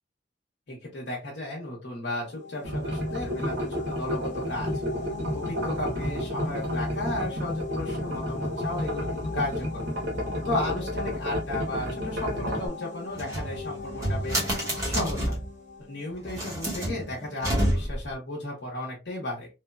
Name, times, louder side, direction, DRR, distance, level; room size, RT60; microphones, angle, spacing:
voice 1, 0.7-4.7 5.3-9.8 10.4-14.4 14.8-15.4 15.8-19.5, left 1 dB, 75° left, -4 dB, 0.8 m, -34 dB
sound 1, 2.2-16.8, left 4 dB, 40° left, 0.9 m, -41 dB
sound 2, 2.6-12.7, equal, 85° right, 1.0 m, -31 dB
sound 3, 13.1-15.5 16.2-18.1, right 1 dB, 15° right, 0.9 m, -29 dB
3.1 x 2.1 x 2.3 m, 0.28 s
head